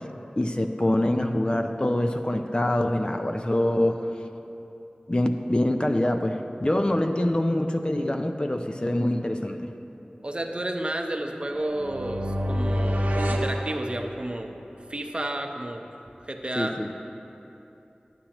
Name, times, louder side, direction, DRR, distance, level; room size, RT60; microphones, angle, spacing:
voice 1, 0.4-4.1 5.1-9.6 16.6-16.9, left 1 dB, 35° left, 5 dB, 0.5 m, -25 dB
voice 2, 10.2-14.6 14.9-15.9 16.3-16.8, right 1 dB, 40° right, 4 dB, 0.6 m, -31 dB
sound 1, 11.5-14.5, equal, 85° right, 0.7 m, -28 dB
11.5 x 8.9 x 2.9 m, 2.9 s
wide cardioid pair, 45°, 3 cm